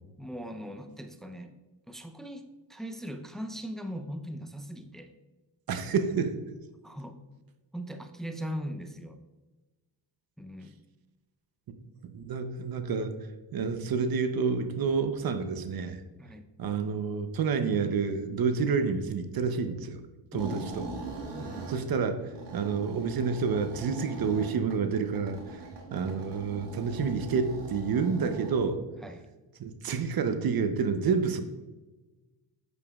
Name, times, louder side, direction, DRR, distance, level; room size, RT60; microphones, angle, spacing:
voice 1, 0.2-1.5 1.9-2.4 2.7-5.1 6.8-7.2 7.7-9.2 10.4-10.8 16.2-16.5 20.3-20.7 21.4-21.7 29.0-29.3, equal, ahead, 6 dB, 0.6 m, -39 dB
voice 2, 5.7-6.3 12.0-13.2 13.5-16.0 16.6-20.0 20.3-20.8 21.7-25.6 25.9-28.8 29.6-31.4, right 5 dB, 55° right, 9 dB, 0.8 m, -29 dB
sound 1, 20.4-28.5, right 3 dB, 70° right, 1.7 m, -42 dB
8.1 x 7.2 x 2.4 m, 1.2 s
cardioid pair, 75°, 44 cm